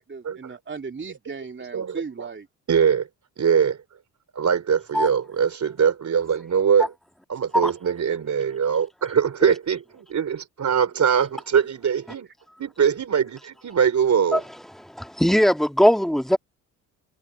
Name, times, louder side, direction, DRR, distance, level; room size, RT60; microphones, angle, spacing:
voice 1, 0.0-2.5, right 5 dB, 30° right, 3.0 m, -36 dB
voice 2, 1.7-2.3 2.7-3.1 3.4-3.8 4.3-6.9 7.3-12.3 12.6-14.4, right 7 dB, 45° right, 4.0 m, -22 dB
voice 3, 14.7-16.4, equal, ahead, 2.3 m, -20 dB
supercardioid pair, 65°, 40 cm